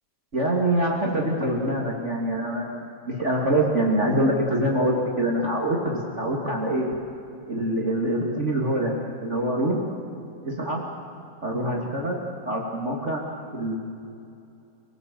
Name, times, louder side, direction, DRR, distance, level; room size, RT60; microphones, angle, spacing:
voice 1, 0.3-6.9 7.5-8.9 9.2-10.0 10.4-10.8 11.4-13.2 13.5-13.7, right 1 dB, 80° right, -1 dB, 0.6 m, -25 dB
28.0 x 19.0 x 7.8 m, 2.6 s
omnidirectional pair, 5.8 m